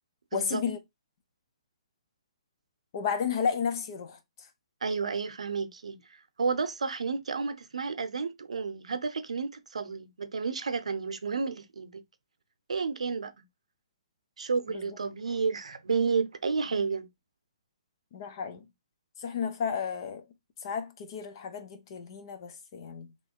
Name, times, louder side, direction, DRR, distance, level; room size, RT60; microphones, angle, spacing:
voice 1, 0.3-0.8 2.9-4.5 14.7-15.0 18.1-18.6 19.2-20.2 20.6-23.1, left 6 dB, 45° left, 0.9 m, -33 dB
voice 2, 4.8-6.0 6.4-12.0 12.7-13.3 14.4-17.1, right 5 dB, 85° right, 0.7 m, -31 dB
3.1 x 3.1 x 4.3 m
hypercardioid pair, 150°, 3 cm